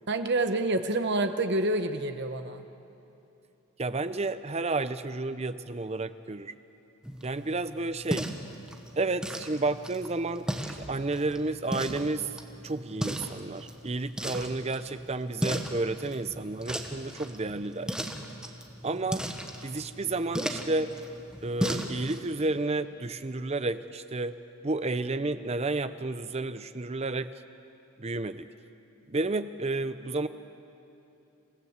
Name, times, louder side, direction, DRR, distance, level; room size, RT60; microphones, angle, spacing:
voice 1, 0.1-2.6, right 2 dB, 50° right, 8 dB, 1.2 m, -28 dB
voice 2, 3.8-6.5 7.2-8.3 9.0-12.3 12.6-18.0 18.8-19.2 19.6-20.9 21.4-24.3 24.6-27.3 28.0-28.5 29.1-30.3, right 2 dB, 30° right, 12 dB, 0.6 m, -31 dB
sound 1, 7.0-22.3, equal, 5° right, 1.2 m, -37 dB
27.5 x 16.0 x 8.2 m, 2.8 s
head